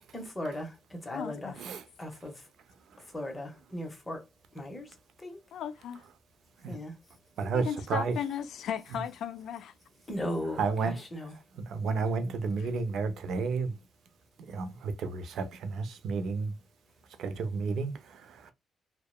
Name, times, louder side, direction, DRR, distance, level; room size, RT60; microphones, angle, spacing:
voice 1, 0.1-1.6 2.0-2.5 3.0-4.3 4.5-5.4 6.7-7.0 10.1-11.3, left 1 dB, 20° left, 0.9 m, -38 dB
voice 2, 1.1-1.6 5.5-6.0 7.5-9.7 12.6-12.7, left 9 dB, 70° left, 0.3 m, -36 dB
voice 3, 7.4-8.1 10.6-10.9 11.7-13.7 14.5-16.6 17.2-18.5, right 4 dB, 70° right, 0.4 m, -31 dB
2.8 x 2.0 x 2.2 m
cardioid pair, 90°, 0 cm